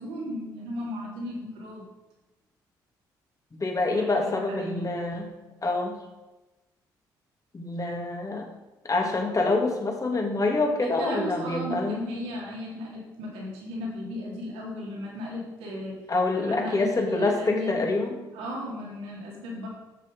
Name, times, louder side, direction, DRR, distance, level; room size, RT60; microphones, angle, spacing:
voice 1, 0.0-1.8 3.8-4.8 10.8-15.9 16.3-17.8 18.3-19.7, left 1 dB, 80° right, -3 dB, 3.5 m, -35 dB
voice 2, 3.5-5.3 5.6-6.0 7.5-8.5 8.8-12.0 16.1-18.1, left 2 dB, 35° left, 1 dB, 2.9 m, -26 dB
11.0 x 7.0 x 5.5 m, 1.1 s
hypercardioid pair, 50°, 10 cm